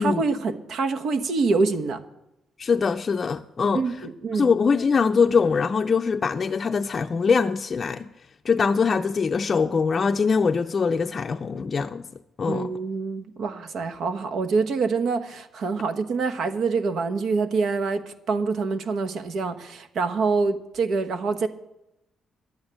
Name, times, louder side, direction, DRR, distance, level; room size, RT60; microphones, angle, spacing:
voice 1, 0.0-2.0 3.7-4.5 12.5-21.5, right 4 dB, 65° right, 1.1 m, -26 dB
voice 2, 2.6-3.8 4.3-8.1 8.4-12.1 12.4-12.7, left 5 dB, 40° left, 0.5 m, -23 dB
11.0 x 8.8 x 8.7 m
cardioid pair, 90°, 0 cm